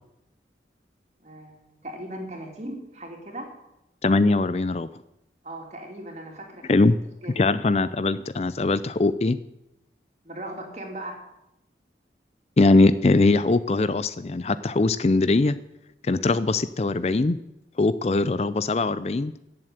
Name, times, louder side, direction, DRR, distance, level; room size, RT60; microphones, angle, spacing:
voice 1, 1.2-3.5 5.4-6.8 7.2-7.4 10.2-11.2, right 1 dB, 40° right, 1 dB, 3.0 m, -38 dB
voice 2, 4.0-4.9 6.7-7.0 7.4-9.4 12.6-15.6 16.0-17.4 17.8-19.3, left 3 dB, 35° left, 15 dB, 0.4 m, -21 dB
16.5 x 7.6 x 8.1 m, 0.89 s
head